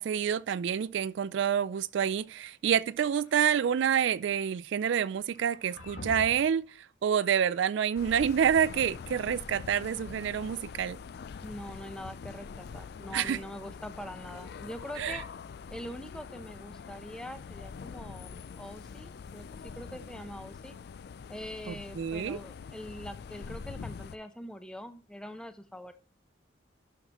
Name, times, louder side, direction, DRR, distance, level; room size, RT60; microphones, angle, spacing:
voice 1, 0.0-11.0 13.1-13.4 15.0-15.2 21.7-22.4, right 8 dB, 65° right, 0.3 m, -28 dB
sound 1, 3.0-3.9 5.3-6.6, left 1 dB, 90° left, 2.1 m, -46 dB
sound 2, 7.9-24.2, left 5 dB, 55° left, 0.3 m, -44 dB
voice 2, 11.4-15.2 15.7-20.8 21.3-25.9, equal, 5° left, 0.6 m, -43 dB
11.5 x 5.7 x 3.0 m
head